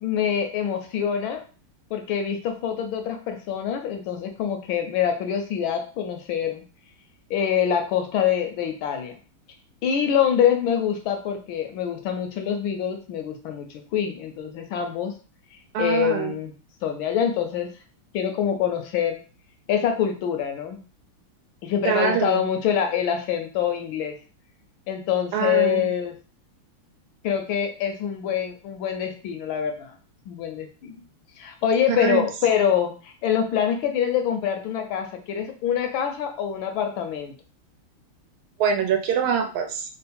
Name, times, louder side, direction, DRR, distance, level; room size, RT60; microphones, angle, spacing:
voice 1, 0.0-1.4 1.9-6.6 7.3-9.1 9.8-15.1 15.8-16.5 16.8-17.7 18.1-19.2 19.7-20.8 21.6-24.2 24.9-26.1 27.2-29.9 30.3-31.0 31.4-37.3, left 8 dB, 75° left, 5 dB, 1.3 m, -25 dB
voice 2, 15.7-16.3 21.8-22.5 25.3-25.8 31.9-32.2 38.6-39.8, right 7 dB, 75° right, 5 dB, 1.5 m, -24 dB
3.8 x 2.0 x 4.2 m, 0.37 s
omnidirectional pair, 2.4 m